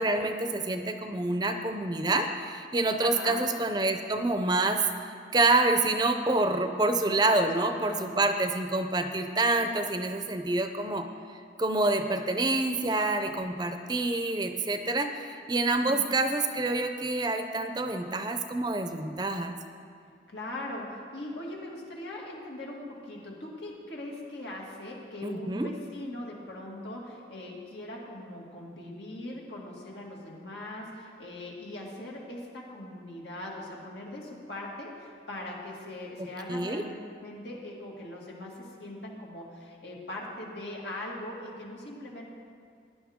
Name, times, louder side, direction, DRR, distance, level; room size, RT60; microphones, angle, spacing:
voice 1, 0.0-4.8 5.3-11.1 11.6-19.6 25.2-25.7 36.2-36.8, right 2 dB, 25° right, 6 dB, 0.5 m, -27 dB
voice 2, 3.0-3.4 7.7-8.2 15.8-16.1 20.3-42.3, left 1 dB, 85° left, -2 dB, 2.2 m, -40 dB
17.0 x 10.0 x 3.6 m, 2.3 s
head